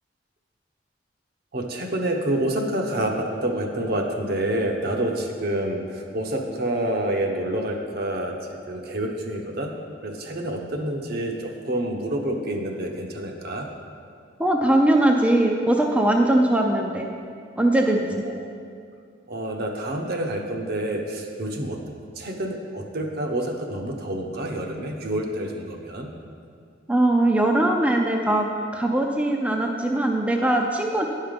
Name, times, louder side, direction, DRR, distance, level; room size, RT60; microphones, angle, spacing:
voice 1, 1.5-8.4 8.7-9.7 10.0-13.7 19.3-21.8 22.2-26.1, right 1 dB, 55° right, 2 dB, 0.9 m, -28 dB
voice 2, 14.4-17.1 17.6-18.1 26.9-28.5 28.7-31.1, right 1 dB, 5° right, 1 dB, 0.4 m, -20 dB
9.7 x 5.6 x 5.2 m, 2.3 s
head